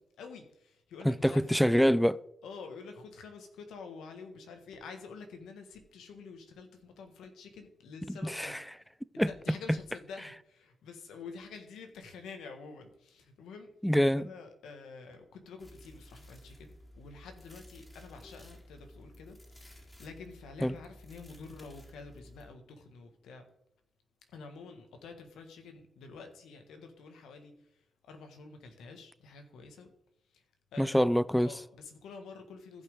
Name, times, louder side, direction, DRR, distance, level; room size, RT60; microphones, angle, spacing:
voice 1, 0.0-1.4 2.4-8.5 9.3-13.7 14.0-16.7 17.0-23.5 24.3-29.9 30.3-30.4 30.7-31.1 31.4-32.8, left 4 dB, 85° left, 1.5 m, -48 dB
voice 2, 1.0-2.2 8.1-8.6 9.2-9.3 13.8-14.3 20.6-20.7 30.8-31.5, equal, 5° left, 0.5 m, -25 dB
sound 1, 15.6-22.5, equal, 20° left, 3.7 m, -54 dB
15.0 x 5.5 x 3.7 m
supercardioid pair, 50°, 0 cm